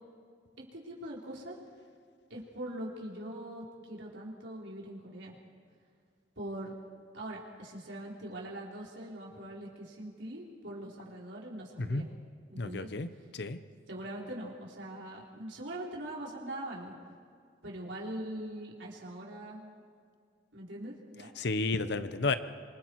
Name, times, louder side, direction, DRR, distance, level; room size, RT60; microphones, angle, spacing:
voice 1, 0.7-1.6 2.3-5.3 6.4-6.7 7.1-12.1 12.5-12.9 13.9-16.9 17.6-19.8 20.5-21.3, right 1 dB, 80° right, -3 dB, 4.3 m, -42 dB
voice 2, 12.6-13.6 21.4-22.3, left 3 dB, 65° left, 11 dB, 1.0 m, -32 dB
26.5 x 25.5 x 4.8 m, 2.1 s
head